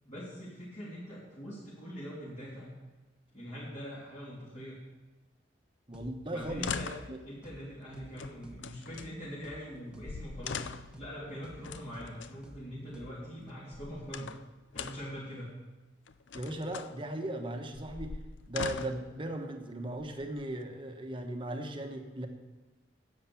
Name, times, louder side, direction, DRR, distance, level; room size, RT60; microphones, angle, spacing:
voice 1, 0.0-2.7 3.3-4.8 6.3-6.9 7.2-10.6 10.9-14.3 14.7-15.5, equal, 40° left, -9 dB, 3.2 m, -43 dB
sound 1, 5.9-6.1 6.4-6.6 6.9-7.1 7.4-7.6 7.9-8.1 8.4-8.6 8.9-9.1 9.4-9.6 9.9-10.1 10.4-10.6 10.9-11.1 11.4-11.6 11.9-12.1 12.4-12.6 12.9-13.1, equal, 5° right, 1.1 m, -50 dB
voice 2, 5.9-6.7 7.1-7.2 16.3-18.2 18.5-22.3, right 1 dB, 30° right, 4 dB, 1.2 m, -37 dB
sound 2, 6.4-7.2 8.2-9.1 9.8-9.9 10.1-11.0 11.6-12.3 13.5-14.4 14.7-15.2 16.1-16.9 17.7-19.1 19.9-20.6, left 6 dB, 90° left, 0.5 m, -41 dB
10.5 x 8.2 x 7.1 m, 1.2 s
head